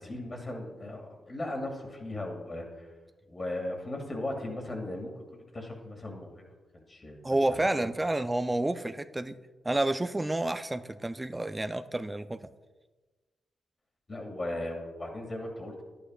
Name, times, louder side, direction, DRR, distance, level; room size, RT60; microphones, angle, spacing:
voice 1, 0.0-2.9 3.3-6.4 6.7-7.2 7.5-7.9 14.1-15.8, left 1 dB, 35° left, 2 dB, 2.1 m, -37 dB
voice 2, 7.2-9.3 9.6-12.5, right 1 dB, 20° right, 10 dB, 0.4 m, -29 dB
11.0 x 8.7 x 2.4 m, 1.3 s
supercardioid pair, 50°, 0 cm